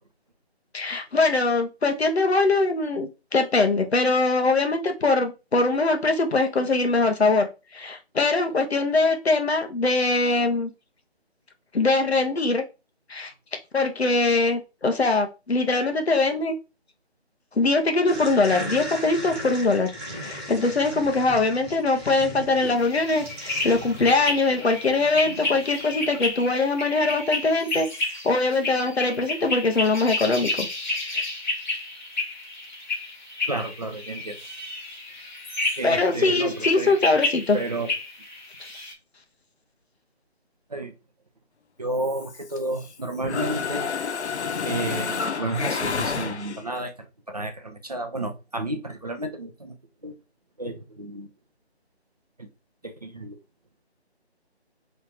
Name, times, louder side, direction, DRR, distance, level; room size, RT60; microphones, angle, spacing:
voice 1, 0.7-7.5 7.7-10.7 11.7-12.6 13.1-13.3 13.7-16.6 17.6-19.9 20.2-30.7 31.1-31.3 35.8-37.6, left 3 dB, 70° left, 5 dB, 0.9 m, -22 dB
sound 1, 18.1-26.6, equal, 5° right, 0.8 m, -38 dB
sound 2, 22.8-38.9, left 2 dB, 45° left, 1.1 m, -31 dB
voice 2, 33.5-34.3 35.8-36.9 37.5-37.9 40.7-40.9 41.8-43.9 44.6-46.9 47.3-49.7 50.0-50.1 50.6-51.3 52.4-52.5 52.8-53.4, right 2 dB, 35° right, 5 dB, 0.5 m, -31 dB
Mechanisms, 42.0-42.9 43.2-46.8, left 5 dB, 90° left, 0.5 m, -29 dB
3.1 x 2.7 x 3.4 m, 0.28 s
figure-of-eight pair, 155°, 33 cm